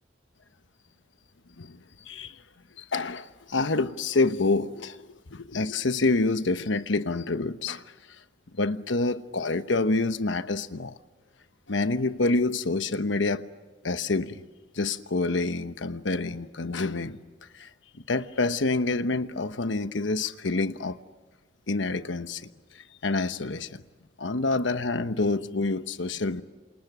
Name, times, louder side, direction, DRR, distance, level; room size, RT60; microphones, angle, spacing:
voice 1, 2.8-5.0 5.3-7.8 8.6-10.9 11.7-13.4 13.8-14.4 14.7-17.2 17.6-17.7 18.1-21.0 21.7-22.4 23.0-23.8 24.2-26.4, left 3 dB, 80° left, 1.1 m, -27 dB
28.0 x 28.0 x 6.1 m
head